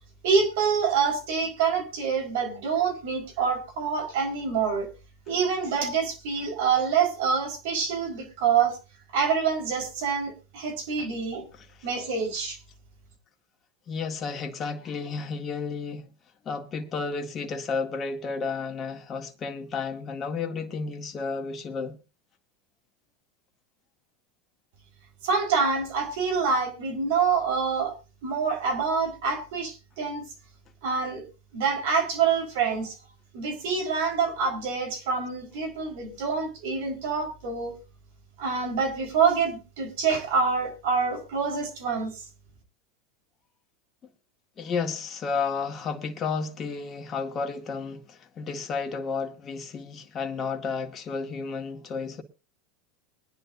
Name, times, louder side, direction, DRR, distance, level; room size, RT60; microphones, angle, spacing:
voice 1, 0.2-4.9 5.3-8.8 9.1-11.4 11.8-12.6 25.2-27.9 28.2-30.2 30.8-31.2 31.5-33.0 33.3-37.7 38.4-42.2, right 5 dB, 70° right, 4.8 m, -26 dB
voice 2, 11.5-11.9 13.9-16.1 16.4-22.0 44.6-52.2, left 5 dB, 35° left, 2.1 m, -32 dB
22.5 x 10.5 x 2.8 m
hypercardioid pair, 95°, 0 cm